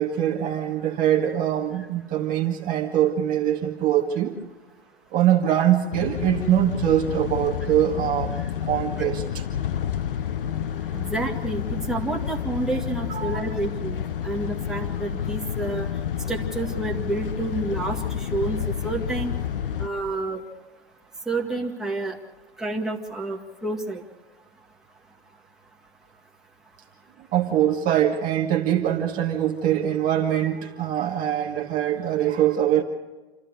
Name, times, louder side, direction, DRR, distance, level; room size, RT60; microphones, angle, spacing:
voice 1, 0.0-4.4 5.1-9.4 10.9-11.0 13.1-13.5 27.2-32.8, right 11 dB, 25° right, 2 dB, 1.6 m, -23 dB
sound 1, 5.9-19.9, left 9 dB, 55° left, 0.9 m, -30 dB
voice 2, 10.9-15.9 16.3-19.3 19.8-20.4 21.3-22.2 22.6-24.0, right 2 dB, ahead, -2 dB, 2.0 m, -29 dB
27.5 x 14.0 x 6.6 m, 1.2 s
figure-of-eight pair, 110°, 32 cm